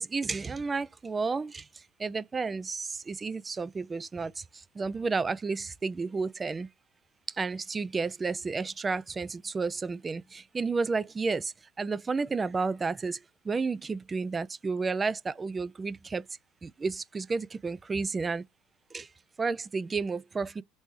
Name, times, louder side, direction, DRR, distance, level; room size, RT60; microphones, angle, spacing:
voice 1, 0.0-6.7 7.3-13.2 13.4-16.2 16.6-18.4 18.9-19.1 19.4-20.6, right 4 dB, 25° right, 0.3 m, -32 dB
3.1 x 2.7 x 3.6 m
hypercardioid pair, 85°, 0 cm